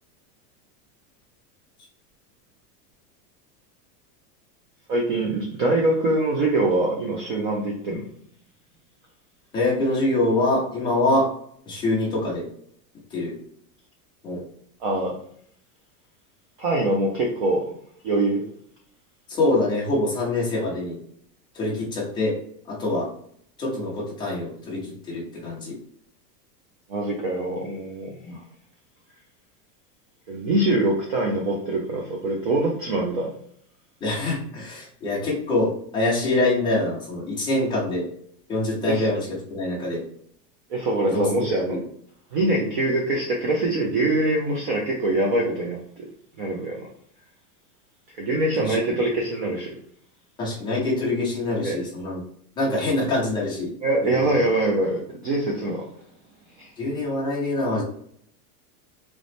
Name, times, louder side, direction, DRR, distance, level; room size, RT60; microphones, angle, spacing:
voice 1, 4.9-8.0 14.8-15.1 16.6-17.7 18.0-18.4 26.9-28.4 30.3-33.3 38.8-39.1 40.7-41.8 42.3-46.0 46.4-46.9 48.2-49.7 51.6-51.8 53.8-55.9 56.6-56.7, right 2 dB, 35° right, -1 dB, 0.4 m, -24 dB
voice 2, 9.5-11.3 11.7-12.5 13.1-13.3 14.2-14.4 19.3-21.0 21.5-22.4 22.7-23.1 23.6-25.7 28.2-28.4 34.0-38.1 38.5-40.0 41.0-41.4 41.7-41.8 48.6-48.8 50.4-52.2 52.6-53.7 54.0-54.4 56.8-57.8, left 2 dB, 10° left, -6 dB, 0.6 m, -25 dB
4.0 x 3.0 x 3.3 m, 0.66 s
supercardioid pair, 175°, 48 cm